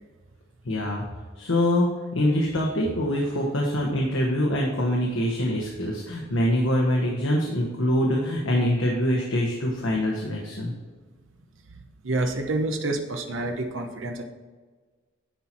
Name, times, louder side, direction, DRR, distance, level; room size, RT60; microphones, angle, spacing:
voice 1, 0.6-1.0 1.4-10.7, left 1 dB, 90° left, -1 dB, 1.2 m, -24 dB
voice 2, 12.0-14.2, right 2 dB, 70° right, 3 dB, 0.9 m, -28 dB
10.5 x 4.4 x 4.3 m, 1.4 s
head